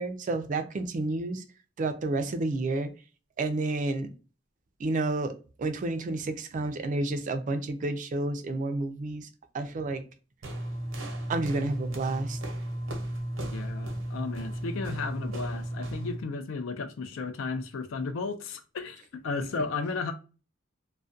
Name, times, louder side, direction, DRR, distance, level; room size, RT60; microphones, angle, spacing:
voice 1, 0.0-1.4 1.8-2.9 3.4-4.1 4.8-9.3 9.5-10.0 11.3-12.4, right 2 dB, 40° right, 0.3 m, -30 dB
sound 1, 10.4-16.2, right 1 dB, 90° right, 0.7 m, -35 dB
voice 2, 13.5-20.1, left 4 dB, 80° left, 0.4 m, -34 dB
2.3 x 2.1 x 2.5 m
head